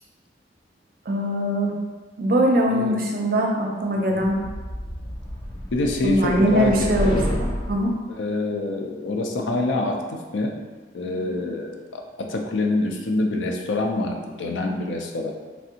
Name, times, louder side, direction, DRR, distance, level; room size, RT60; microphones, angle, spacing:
voice 1, 1.1-1.7 2.2-4.4 6.0-7.2 7.7-7.9, equal, 50° right, 1 dB, 0.4 m, -21 dB
voice 2, 3.9-4.4 5.7-7.4 8.1-10.5 10.9-15.3, left 2 dB, 90° left, 2 dB, 0.4 m, -26 dB
sound 1, 4.3-7.9, equal, 25° left, 0.4 m, -30 dB
3.2 x 2.5 x 2.7 m, 1.4 s
head